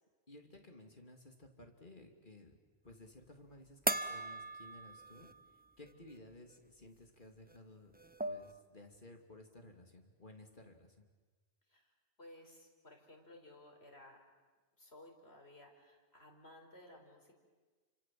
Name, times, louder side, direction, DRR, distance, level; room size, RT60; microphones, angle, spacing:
voice 1, 0.3-2.6 2.8-5.3 5.8-7.9 8.3-11.0, left 1 dB, 50° left, 3 dB, 3.0 m, -56 dB
sound 1, 3.9-5.5 5.9-6.0 7.5-7.6 7.9-8.6, right 1 dB, 10° right, 0.7 m, -38 dB
voice 2, 11.7-14.2 14.8-17.3, left 1 dB, 80° left, 1 dB, 5.0 m, -58 dB
30.0 x 25.5 x 7.7 m, 1.3 s
omnidirectional pair, 1.1 m